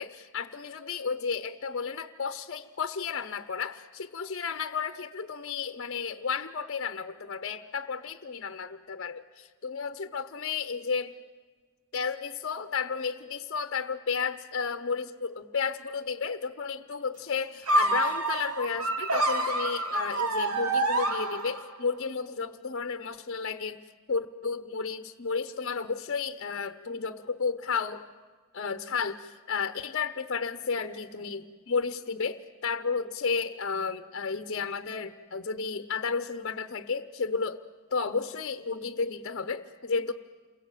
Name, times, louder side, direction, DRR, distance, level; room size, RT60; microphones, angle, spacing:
voice 1, 0.0-11.1 11.9-23.8 24.1-28.0 28.5-37.6 37.9-40.1, left 5 dB, 50° left, 9 dB, 0.9 m, -32 dB
sound 1, 17.7-21.8, right 2 dB, 75° right, 3.0 m, -27 dB
29.0 x 22.5 x 9.1 m, 1.4 s
head